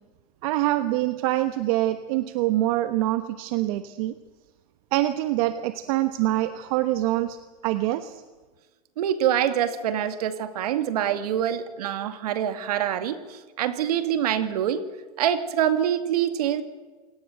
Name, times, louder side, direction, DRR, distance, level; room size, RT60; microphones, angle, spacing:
voice 1, 0.4-4.1 4.9-7.4 7.6-8.2, right 15 dB, 65° right, 10 dB, 1.3 m, -25 dB
voice 2, 9.0-14.8 15.2-16.6, right 10 dB, 80° right, 10 dB, 2.3 m, -25 dB
27.5 x 18.5 x 7.9 m, 1.3 s
hypercardioid pair, 115°, 19 cm